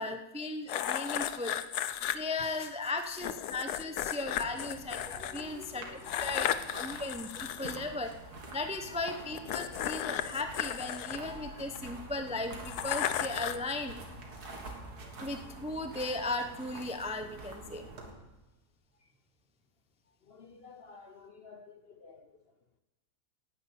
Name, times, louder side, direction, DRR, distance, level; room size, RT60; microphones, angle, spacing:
voice 1, 0.0-1.6 2.1-5.9 6.2-8.1 8.5-14.0 15.2-17.9, left 2 dB, 5° right, 6 dB, 0.5 m, -36 dB
sound 1, 0.7-2.2 3.2-5.4 6.0-7.8 9.3-11.8 12.7-13.7, left 11 dB, 80° left, 1.2 m, -34 dB
voice 2, 0.8-1.4 1.7-1.8 3.6-4.4 5.1-7.2 7.5-8.1 8.9-9.0 9.4-9.5 11.2-11.5 19.0-19.1 20.1-22.5, left 4 dB, 50° left, 8 dB, 0.8 m, -54 dB
sound 2, 4.3-18.1, right 2 dB, 90° right, 2.4 m, -47 dB
10.0 x 9.9 x 8.5 m, 1.1 s
omnidirectional pair, 1.6 m